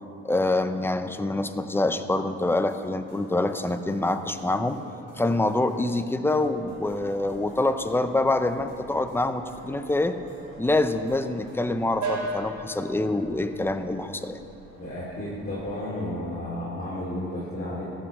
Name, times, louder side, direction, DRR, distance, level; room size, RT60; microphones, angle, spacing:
voice 1, 0.2-4.8 5.2-10.2 10.6-14.4, left 2 dB, 5° left, 9 dB, 0.6 m, -26 dB
sound 1, 2.4-11.6, equal, 40° right, 3.3 m, -48 dB
sound 2, 6.4-15.8, right 2 dB, 70° right, 2.6 m, -40 dB
voice 2, 14.8-17.8, left 1 dB, 30° left, -8 dB, 3.1 m, -32 dB
14.5 x 6.0 x 7.2 m, 2.9 s
cardioid pair, 90°, 30 cm